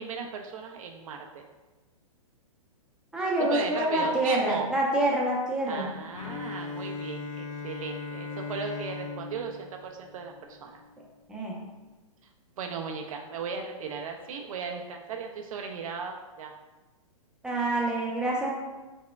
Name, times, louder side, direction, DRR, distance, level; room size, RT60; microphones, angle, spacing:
voice 1, 0.0-1.4 3.4-4.7 5.6-10.8 12.6-16.5, right 5 dB, 70° right, 3 dB, 0.4 m, -36 dB
voice 2, 3.1-5.9 11.3-11.5 17.4-18.5, right 1 dB, 5° right, -3 dB, 0.5 m, -26 dB
Bowed string instrument, 6.1-11.0, left 4 dB, 65° left, 0.4 m, -39 dB
4.0 x 2.2 x 2.3 m, 1.2 s
hypercardioid pair, 135°, 18 cm